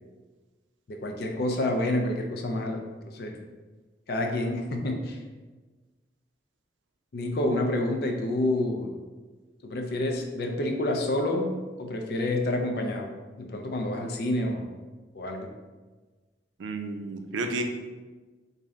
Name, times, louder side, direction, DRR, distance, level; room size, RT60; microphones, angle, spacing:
voice 1, 0.9-2.8 3.1-3.4 4.1-5.2 7.1-8.9 9.6-11.5 11.8-13.1 13.4-14.7 15.1-15.5, left 1 dB, 55° left, 3 dB, 0.4 m, -28 dB
voice 2, 16.6-17.6, right 2 dB, 85° right, 5 dB, 0.4 m, -31 dB
3.2 x 2.6 x 3.6 m, 1.3 s
head